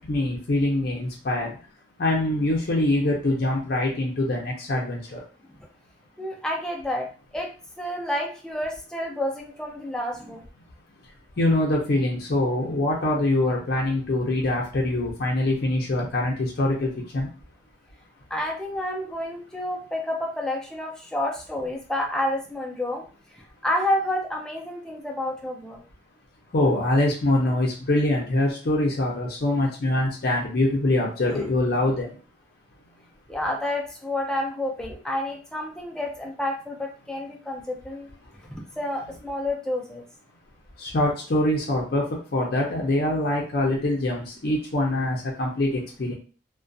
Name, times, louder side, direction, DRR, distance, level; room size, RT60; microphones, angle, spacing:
voice 1, 0.1-1.5 2.0-5.2 11.4-17.3 26.5-32.1 40.8-46.1, left 1 dB, 60° left, -2 dB, 0.5 m, -24 dB
voice 2, 6.2-10.4 18.3-23.0 23.6-25.8 31.2-31.5 33.3-38.1 38.8-40.0, left 1 dB, 5° left, 0 dB, 0.4 m, -29 dB
2.4 x 2.1 x 2.5 m, 0.37 s
head